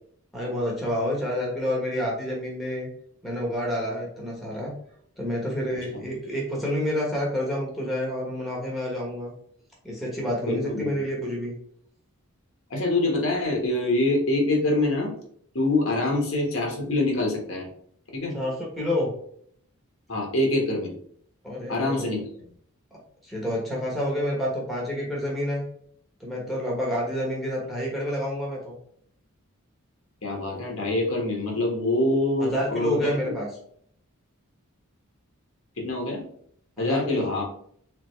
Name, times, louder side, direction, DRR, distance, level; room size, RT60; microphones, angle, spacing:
voice 1, 0.3-2.9 3.2-4.7 5.2-9.3 9.8-11.6 16.0-16.1 18.3-19.1 21.4-22.1 23.2-25.6 26.2-28.8 32.4-33.5 36.8-37.3, equal, ahead, -4 dB, 1.2 m, -29 dB
voice 2, 10.4-11.0 12.7-15.1 15.5-17.7 18.1-18.4 20.1-20.9 21.7-22.2 30.2-33.0 35.8-36.2 36.8-37.4, left 2 dB, 65° left, 0 dB, 1.3 m, -25 dB
3.5 x 3.4 x 3.2 m, 0.64 s
head